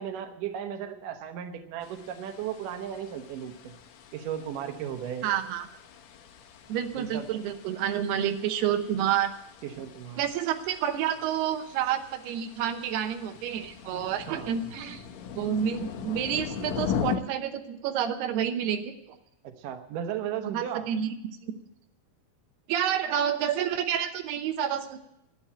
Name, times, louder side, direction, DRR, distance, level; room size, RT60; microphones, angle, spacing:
voice 1, 0.0-3.7 4.1-5.3 6.9-7.4 9.6-10.2 14.3-14.6 19.4-20.9, right 9 dB, 65° right, 6 dB, 2.5 m, -35 dB
sound 1, 1.8-17.2, left 7 dB, 85° left, 1.5 m, -40 dB
voice 2, 5.2-5.7 6.7-9.3 10.2-15.0 15.4-18.9 20.4-21.1 21.4-21.6 22.7-25.0, right 9 dB, 90° right, 7 dB, 3.0 m, -29 dB
11.5 x 9.7 x 8.7 m, 0.83 s
omnidirectional pair, 4.5 m